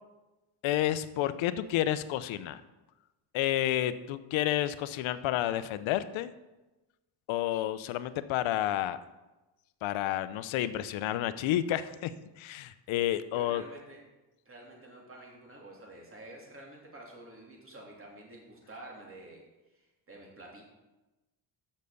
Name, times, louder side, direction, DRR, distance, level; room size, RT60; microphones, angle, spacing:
voice 1, 0.6-2.6 3.3-6.3 7.3-9.0 9.8-12.1 12.4-13.6, left 13 dB, 80° left, 13 dB, 0.7 m, -30 dB
voice 2, 13.3-14.0 14.4-19.4 19.7-20.6, right 1 dB, 25° right, -2 dB, 3.0 m, -49 dB
7.3 x 6.6 x 6.9 m, 1.1 s
cardioid pair, 105°, 47 cm